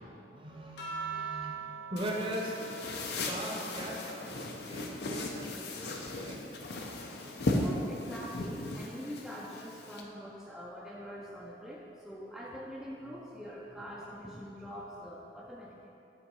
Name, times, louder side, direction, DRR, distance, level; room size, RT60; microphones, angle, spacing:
voice 1, 0.3-2.6 3.2-4.4 4.7-6.4, equal, 30° right, -1 dB, 0.8 m, -40 dB
sound 1, 0.8-5.6 6.0-7.8 9.0-9.5, right 5 dB, 80° left, 1.2 m, -45 dB
sound 2, 2.0-10.0, left 2 dB, 65° left, 0.6 m, -37 dB
voice 2, 7.5-15.9, equal, ahead, -5 dB, 0.4 m, -44 dB
7.7 x 3.7 x 4.6 m, 2.8 s
head